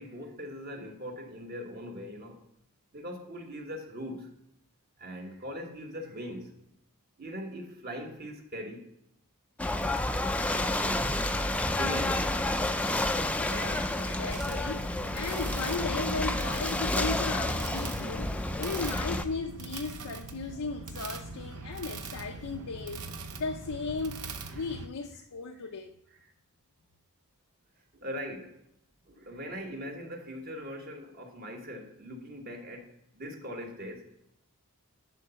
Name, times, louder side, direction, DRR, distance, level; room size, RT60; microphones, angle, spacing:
voice 1, 0.0-2.4 2.9-4.3 5.0-6.5 7.2-8.9 9.9-11.2 11.7-12.3 27.9-28.5 29.0-34.1, equal, 45° right, 1.3 m, -41 dB
Ocean / Boat Water vehicle, 9.6-19.2, left 1 dB, 5° left, 0.4 m, -30 dB
voice 2, 13.2-23.1 23.4-24.2 24.5-25.9, left 4 dB, 85° left, 0.6 m, -36 dB
sound 1, 14.3-24.9, right 4 dB, 75° right, 0.8 m, -42 dB
11.0 x 3.9 x 5.6 m
head